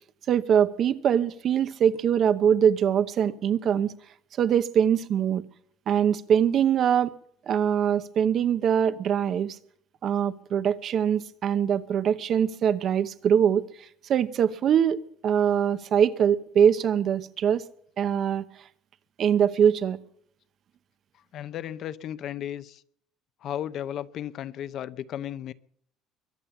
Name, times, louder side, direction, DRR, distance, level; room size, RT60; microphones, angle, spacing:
voice 1, 0.3-3.9 4.4-5.4 5.9-7.1 7.5-9.6 10.0-15.0 15.2-17.6 18.0-18.4 19.2-20.0, right 8 dB, 40° right, 0.8 m, -23 dB
voice 2, 21.3-22.8 23.4-25.5, left 11 dB, 50° left, 0.7 m, -34 dB
23.0 x 8.5 x 7.2 m
cardioid pair, 150°, 0 cm